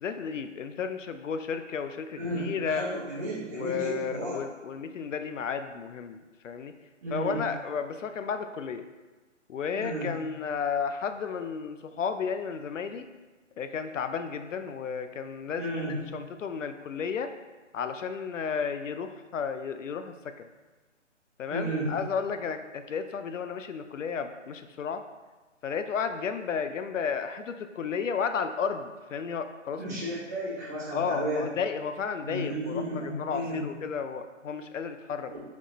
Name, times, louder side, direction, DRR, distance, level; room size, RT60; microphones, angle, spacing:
voice 1, 0.0-2.8 3.5-6.2 6.4-6.7 7.1-8.9 9.5-13.1 13.6-15.9 16.1-17.3 17.7-20.5 21.4-25.0 25.6-30.0 30.9-35.3, left 6 dB, 80° left, 9 dB, 0.5 m, -33 dB
voice 2, 2.2-4.4 7.0-7.4 9.8-10.1 15.5-16.0 21.5-21.9 29.8-31.4 32.2-33.6 35.3-35.4, right 1 dB, 15° right, -10 dB, 0.9 m, -33 dB
4.2 x 3.0 x 4.0 m, 1.2 s
hypercardioid pair, 160°, 37 cm